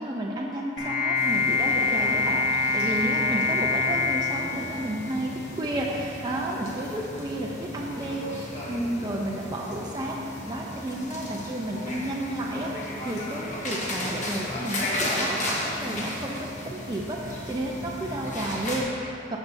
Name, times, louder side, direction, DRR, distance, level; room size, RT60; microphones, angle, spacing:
voice 1, 0.0-10.2 10.5-19.4, right 1 dB, 20° right, -3 dB, 0.6 m, -32 dB
sound 1, 0.8-5.3, left 4 dB, 90° left, 1.7 m, -25 dB
sound 2, 1.1-18.8, left 1 dB, 40° left, 1.2 m, -35 dB
14.5 x 6.9 x 2.7 m, 2.8 s
head